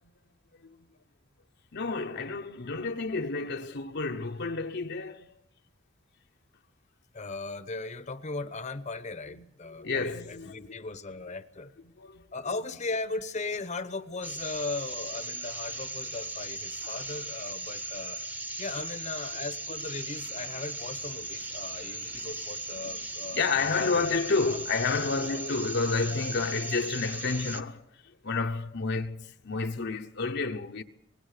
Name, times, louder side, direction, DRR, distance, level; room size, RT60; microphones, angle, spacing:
voice 1, 1.7-5.3 9.3-9.4 9.7-10.5 12.0-12.2 16.8-17.0 23.3-30.8, left 4 dB, 60° left, 1.0 m, -30 dB
voice 2, 7.1-11.7 12.3-18.2 18.6-23.9, left 3 dB, 35° left, 1.0 m, -37 dB
sound 1, 14.2-27.6, right 2 dB, 10° right, 1.1 m, -38 dB
26.0 x 19.0 x 6.7 m
head